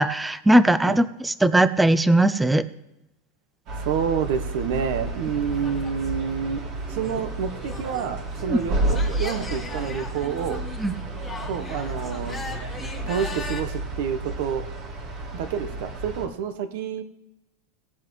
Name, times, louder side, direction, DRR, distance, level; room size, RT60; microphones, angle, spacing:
voice 1, 0.0-2.7 8.5-8.6 10.8-10.9, right 1 dB, 5° right, 14 dB, 0.4 m, -19 dB
sound 1, 3.7-16.3, right 2 dB, 45° right, 2.3 m, -31 dB
voice 2, 3.8-6.6 6.9-10.6 11.5-12.4 13.1-14.6 15.3-17.0, right 7 dB, 65° right, 9 dB, 1.1 m, -28 dB
sound 2, 5.0-13.6, left 3 dB, 10° left, 1.7 m, -39 dB
18.0 x 7.5 x 3.2 m, 0.93 s
supercardioid pair, 150°, 0 cm